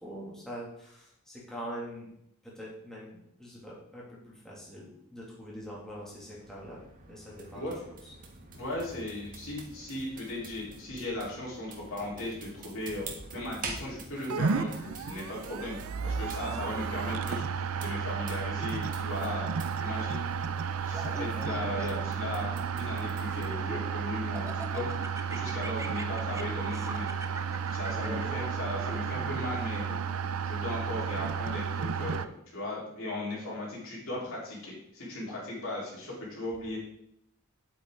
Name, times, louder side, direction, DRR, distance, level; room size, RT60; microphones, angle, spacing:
voice 1, 0.0-2.1 2.4-8.1 8.4-8.5 16.4-16.7 27.9-28.4, equal, ahead, -6 dB, 2.5 m, -43 dB
sound 1, 5.1-23.6, right 3 dB, 40° right, 1.5 m, -47 dB
voice 2, 8.5-15.8 16.0-17.4 17.8-19.5 19.8-20.3 20.8-22.5 22.7-27.1 27.7-29.9 30.4-36.8, left 1 dB, 65° left, -5 dB, 4.2 m, -37 dB
sound 2, 14.3-32.3, right 6 dB, 70° right, 0.5 m, -33 dB
Laughter, 20.9-22.2 22.8-23.9 24.4-29.4, right 2 dB, 15° right, 0.6 m, -43 dB
9.0 x 8.6 x 3.9 m, 0.75 s
head